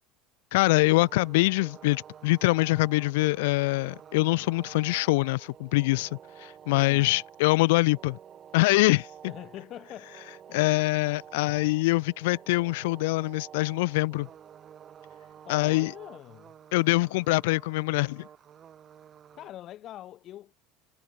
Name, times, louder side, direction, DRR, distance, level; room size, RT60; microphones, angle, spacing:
voice 1, 0.5-8.2 8.5-9.3 10.5-14.3 15.5-15.9 16.7-18.3, left 22 dB, 75° left, 0.7 m, -24 dB
sound 1, 0.6-19.5, right 9 dB, 25° right, 2.0 m, -50 dB
voice 2, 6.7-7.2 9.2-10.2 10.5-10.6 15.4-16.5 19.3-20.6, left 13 dB, 30° left, 2.2 m, -43 dB
cardioid pair, 175°, 0 cm